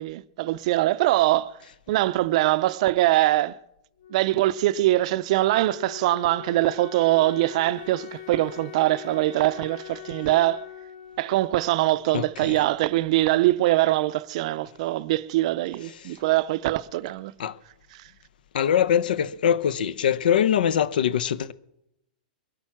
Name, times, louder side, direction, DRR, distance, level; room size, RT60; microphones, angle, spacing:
voice 1, 0.0-1.5 1.9-3.6 4.1-10.6 11.2-17.3, right 16 dB, 45° right, 0.5 m, -23 dB
Wind instrument woodwind instrument, 4.0-12.7, left 11 dB, 60° left, 2.6 m, -43 dB
voice 2, 12.1-12.6 17.4-17.6 18.5-21.5, left 9 dB, 80° left, 0.8 m, -23 dB
22.5 x 8.9 x 6.0 m
supercardioid pair, 160°, 5 cm